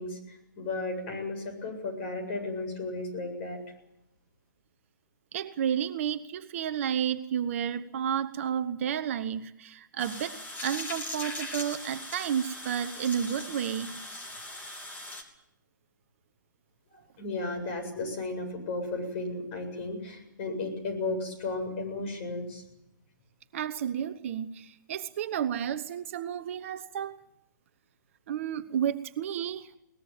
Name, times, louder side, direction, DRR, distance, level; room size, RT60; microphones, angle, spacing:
voice 1, 0.0-3.6 16.9-22.6, left 2 dB, 35° left, 4 dB, 7.7 m, -34 dB
voice 2, 5.3-13.9 23.5-27.2 28.3-29.7, right 9 dB, 40° right, 11 dB, 1.0 m, -31 dB
sound 1, 10.0-15.2, left 1 dB, 15° left, 3.3 m, -40 dB
22.0 x 19.5 x 9.0 m, 0.85 s
figure-of-eight pair, 130°, 11 cm